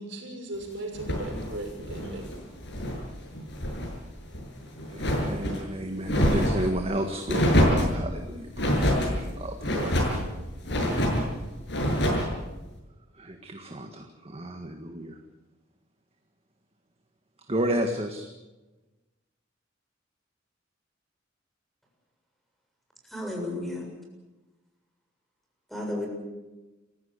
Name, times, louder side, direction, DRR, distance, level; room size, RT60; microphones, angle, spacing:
voice 1, 0.0-2.4, right 2 dB, 70° right, 3 dB, 6.2 m, -37 dB
sound 1, 0.9-3.0 3.3-3.9 4.3-5.6 6.0-6.7 7.3-8.0 8.6-9.1 9.6-10.2 10.6-11.3 11.7-12.3, equal, 65° left, 7.8 m, -25 dB
voice 2, 4.9-9.9 10.8-11.1 13.2-15.2 17.5-18.3, right 1 dB, 30° right, 4 dB, 1.8 m, -32 dB
voice 3, 23.1-23.8 25.7-26.1, left 1 dB, ahead, 0 dB, 7.1 m, -32 dB
29.0 x 16.0 x 8.3 m, 1.1 s
head